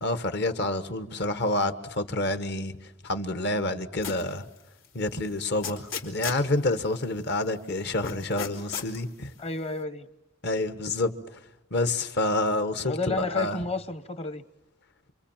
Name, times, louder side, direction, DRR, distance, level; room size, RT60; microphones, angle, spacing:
voice 1, 0.0-2.8 3.0-4.4 4.9-9.3 10.4-11.1 11.7-13.6, left 2 dB, 55° left, 1.4 m, -28 dB
sound 1, 4.0-4.3 4.8-4.9 5.6-6.5 8.0-9.0, left 6 dB, 85° left, 3.2 m, -34 dB
voice 2, 9.4-10.1 12.8-14.4, left 3 dB, 30° left, 1.0 m, -31 dB
28.0 x 24.0 x 7.3 m
head